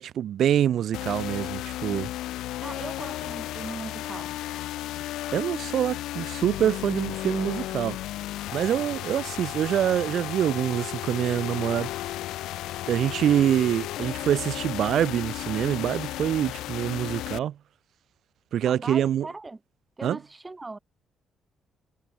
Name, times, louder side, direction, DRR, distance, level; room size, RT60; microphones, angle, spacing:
voice 1, 0.0-2.1 5.3-8.0 8.5-11.9 12.9-17.6 18.5-19.3 20.0-20.2, right 10 dB, 70° right, 3.0 m, -25 dB
sound 1, 0.9-17.4, left 15 dB, 90° left, 4.3 m, -34 dB
voice 2, 2.6-4.3 18.7-19.6 20.0-20.8, right 3 dB, 20° right, 4.6 m, -38 dB
cardioid pair, 90°, 0 cm